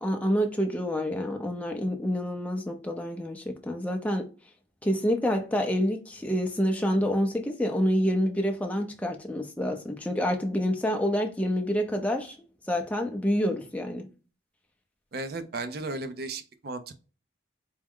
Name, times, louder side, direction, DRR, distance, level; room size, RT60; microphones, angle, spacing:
voice 1, 0.0-4.3 4.8-12.4 12.7-14.1, equal, 10° left, 0.5 m, -27 dB
voice 2, 15.1-16.9, right 2 dB, 55° right, 0.5 m, -35 dB
4.5 x 2.1 x 3.6 m
head